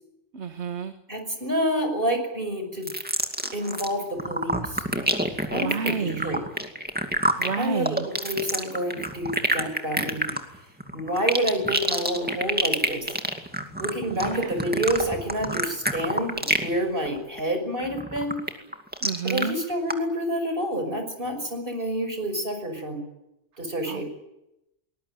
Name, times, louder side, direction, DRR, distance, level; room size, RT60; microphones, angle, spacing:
voice 1, 0.3-0.9 5.5-6.4 7.4-8.1 14.1-14.7 19.0-19.6 23.9-24.0, right 6 dB, 65° right, 8 dB, 1.6 m, -30 dB
voice 2, 1.1-2.9 3.5-4.8 5.5-6.4 7.6-10.4 10.9-13.1 13.8-18.4 19.2-23.0 23.6-24.0, equal, 45° right, 6 dB, 6.1 m, -28 dB
sound 1, 2.8-3.9 4.2-16.8 17.1-17.4 17.8-19.4 19.9-20.0, equal, 10° right, 2.3 m, -27 dB
22.5 x 20.5 x 9.3 m, 0.89 s
omnidirectional pair, 1.3 m